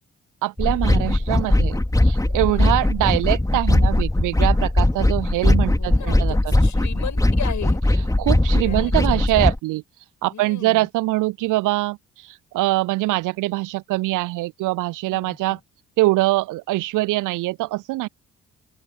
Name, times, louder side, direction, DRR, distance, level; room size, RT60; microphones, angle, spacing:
voice 1, 0.4-6.5 8.2-9.8 10.2-15.6 16.0-18.1, right 19 dB, 55° right, 0.6 m, -23 dB
sound 1, 0.6-9.6, left 1 dB, 10° left, 2.4 m, -19 dB
voice 2, 5.7-8.2 8.6-9.4 10.3-10.9 15.1-15.6, left 8 dB, 50° left, 7.6 m, -36 dB
open air
figure-of-eight pair, 45°, 38 cm